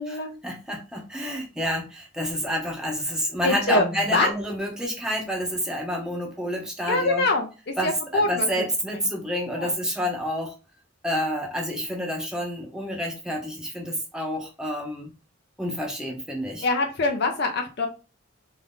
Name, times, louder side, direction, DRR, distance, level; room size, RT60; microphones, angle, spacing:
voice 1, 0.1-7.3 7.8-10.5 11.0-15.1 15.6-16.7, equal, 5° right, 0 dB, 0.6 m, -29 dB
voice 2, 3.4-4.3 6.9-8.5 9.5-9.7 16.6-17.9, left 2 dB, 50° left, 3 dB, 0.5 m, -24 dB
2.6 x 2.5 x 3.4 m, 0.32 s
head